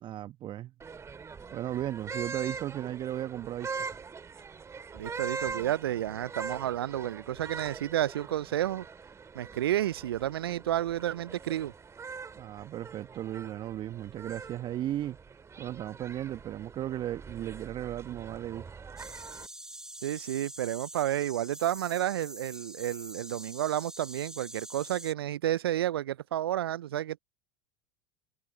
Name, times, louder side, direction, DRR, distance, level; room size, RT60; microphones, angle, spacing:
voice 1, 0.0-0.7 1.5-3.9 12.4-15.2 15.6-18.6, right 12 dB, 40° right, 1.0 m, -35 dB
sound 1, 0.8-19.5, right 5 dB, 20° right, 2.3 m, -43 dB
voice 2, 4.9-8.9 9.3-11.7 20.0-27.2, right 12 dB, 75° right, 0.4 m, -31 dB
sound 2, 19.0-25.1, right 1 dB, 5° right, 2.1 m, -45 dB
hypercardioid pair, 80°, 13 cm